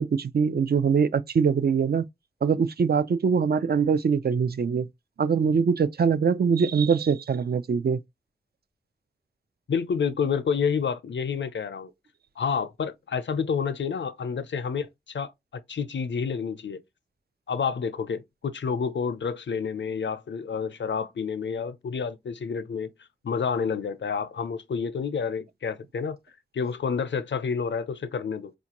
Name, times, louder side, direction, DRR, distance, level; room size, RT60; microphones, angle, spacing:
voice 1, 0.0-2.1 2.4-4.9 5.2-8.0, right 6 dB, 60° right, 0.4 m, -23 dB
voice 2, 9.7-11.9 12.4-16.8 17.5-22.9 23.2-26.2 26.5-28.5, left 6 dB, 80° left, 0.5 m, -29 dB
4.3 x 2.4 x 2.9 m
wide cardioid pair, 70°, 19 cm